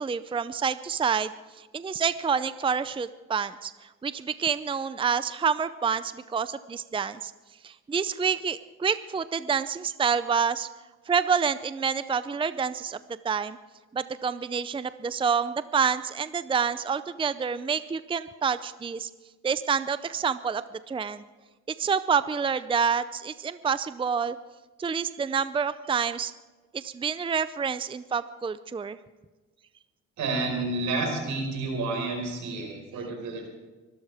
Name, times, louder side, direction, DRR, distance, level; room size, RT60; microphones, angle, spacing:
voice 1, 0.0-1.3 1.6-7.3 7.6-10.7 11.1-13.0 13.2-13.6 13.9-19.1 19.4-21.2 21.8-24.4 24.8-26.3 26.7-29.0, right 6 dB, 15° right, 13 dB, 0.5 m, -28 dB
voice 2, 30.2-33.5, right 3 dB, 80° right, 2 dB, 5.1 m, -30 dB
24.0 x 13.0 x 3.5 m, 1.2 s
cardioid pair, 90°, 30 cm